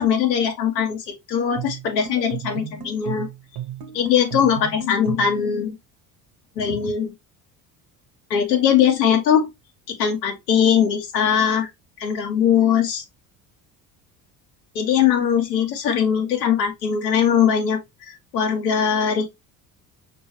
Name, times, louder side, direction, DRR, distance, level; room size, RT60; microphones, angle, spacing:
voice 1, 0.0-3.3 3.9-5.7 6.6-7.1 8.3-9.5 9.9-11.7 12.0-13.0 14.7-17.8 18.1-19.2, left 8 dB, 85° left, 1.1 m, -20 dB
sound 1, 1.6-5.4, right 9 dB, 50° right, 1.0 m, -34 dB
5.4 x 2.6 x 2.9 m
hypercardioid pair, 60°, 48 cm